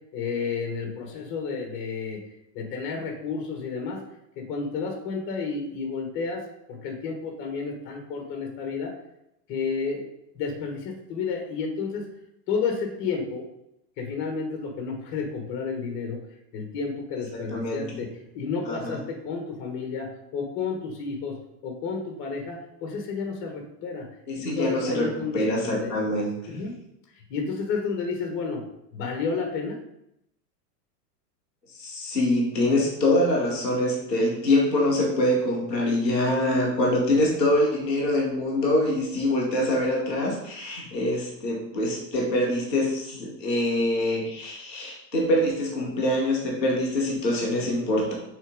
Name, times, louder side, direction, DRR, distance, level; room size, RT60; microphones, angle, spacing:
voice 1, 0.1-2.2 2.5-4.0 4.4-6.4 6.7-8.9 9.5-10.0 10.3-12.0 12.5-13.4 14.0-16.2 16.5-18.1 18.3-21.4 21.6-24.1 24.4-26.0 26.5-26.7 27.1-28.6 28.9-29.8, left 5 dB, 25° left, 3 dB, 1.2 m, -31 dB
voice 2, 17.5-18.0 18.7-19.0 24.3-26.6 31.7-48.1, left 1 dB, 5° right, -17 dB, 0.3 m, -24 dB
6.5 x 3.6 x 5.1 m, 0.82 s
supercardioid pair, 170°, 48 cm